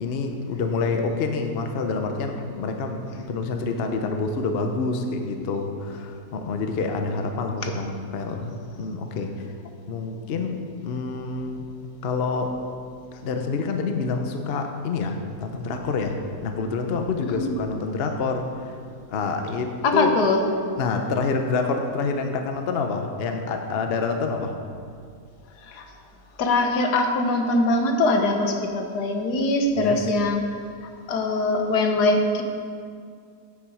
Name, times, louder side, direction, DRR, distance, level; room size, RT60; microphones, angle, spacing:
voice 1, 0.0-3.0 3.3-9.3 9.9-11.7 12.0-12.6 13.1-18.7 19.1-20.2 20.8-24.6 29.8-30.0, left 4 dB, 50° left, 5 dB, 0.8 m, -27 dB
voice 2, 19.8-20.4 25.6-25.8 26.4-30.4 30.8-32.4, left 2 dB, 80° left, 4 dB, 1.5 m, -22 dB
9.1 x 8.3 x 4.9 m, 2.2 s
omnidirectional pair, 1.7 m